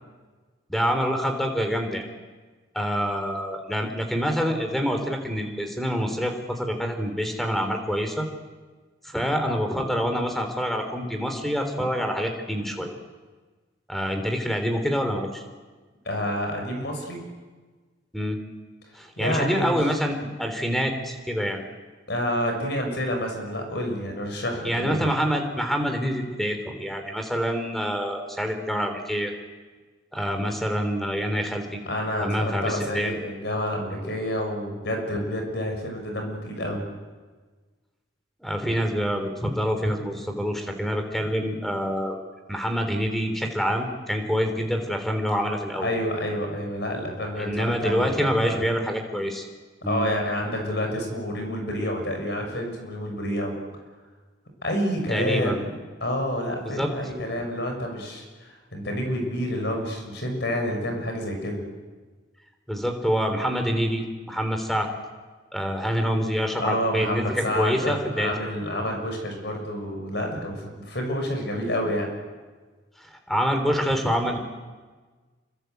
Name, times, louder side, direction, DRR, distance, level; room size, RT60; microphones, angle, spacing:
voice 1, 0.7-2.1 2.7-8.3 9.0-12.9 13.9-15.4 18.1-18.4 18.9-21.6 24.6-29.3 30.1-31.8 32.2-33.2 38.4-42.2 42.5-45.9 47.4-49.5 49.8-50.1 55.1-55.7 56.6-56.9 62.7-64.9 65.5-68.3 73.3-74.4, equal, ahead, 5 dB, 3.5 m, -26 dB
voice 2, 16.0-17.3 19.2-19.8 22.1-25.0 31.9-36.8 45.8-48.6 49.8-53.5 54.6-55.7 56.0-61.6 66.6-72.1, equal, 65° left, 3 dB, 6.8 m, -28 dB
28.0 x 24.5 x 8.1 m, 1.3 s
head